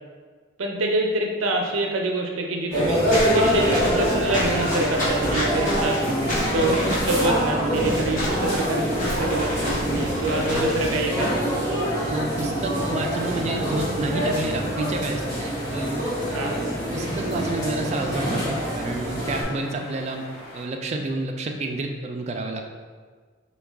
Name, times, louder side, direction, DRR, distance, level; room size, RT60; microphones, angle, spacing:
voice 1, 0.6-6.1 6.5-11.4 16.3-16.6, right 2 dB, 85° right, 1 dB, 0.6 m, -26 dB
sound 1, 2.7-19.4, equal, 20° left, 1.1 m, -25 dB
Walk footsteps / Squeak, 3.1-11.0, left 1 dB, 40° left, 1.0 m, -30 dB
voice 2, 12.1-16.0 16.9-22.6, right 2 dB, 35° right, 3 dB, 0.3 m, -30 dB
sound 2, 14.3-20.6, left 1 dB, 90° left, 1.1 m, -42 dB
4.7 x 2.3 x 3.4 m, 1.5 s
head